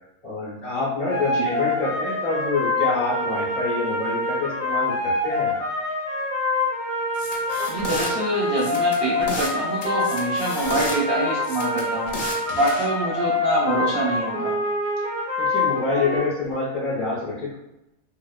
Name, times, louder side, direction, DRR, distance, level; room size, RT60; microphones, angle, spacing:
voice 1, 0.2-5.5 15.4-17.6, left 3 dB, 45° left, -6 dB, 0.7 m, -26 dB
sound 1, 1.1-16.2, left 2 dB, 65° right, 1.2 m, -26 dB
sound 2, 7.1-8.1 8.6-9.5 9.8-11.0 11.4-12.8, left 2 dB, 70° left, 1.1 m, -32 dB
voice 2, 7.7-12.1 12.5-14.5, right 1 dB, 45° right, -6 dB, 0.9 m, -25 dB
2.9 x 2.0 x 2.3 m, 0.87 s
omnidirectional pair, 1.6 m